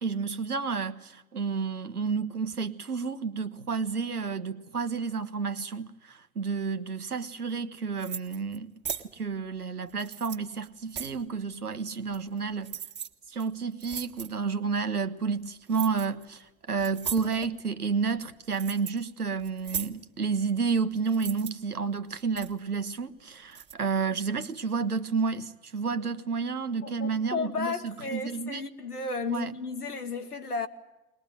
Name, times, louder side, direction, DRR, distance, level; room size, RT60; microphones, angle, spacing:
voice 1, 0.0-8.7 9.1-12.8 13.3-28.6 29.3-29.5, right 5 dB, 90° right, 1.2 m, -31 dB
sound 1, 8.0-8.6 8.9-9.1 9.9-11.2 12.1-12.4 12.6-13.1 13.4-13.5 13.8-14.3 15.7-16.2 16.8-17.5 18.2-19.0 19.4-20.0 21.1-21.5 22.1-22.6 23.5-23.7, right 8 dB, 25° right, 1.7 m, -37 dB
voice 2, 26.8-30.7, left 4 dB, 85° left, 1.5 m, -33 dB
22.0 x 20.0 x 8.9 m
figure-of-eight pair, 85°, 44 cm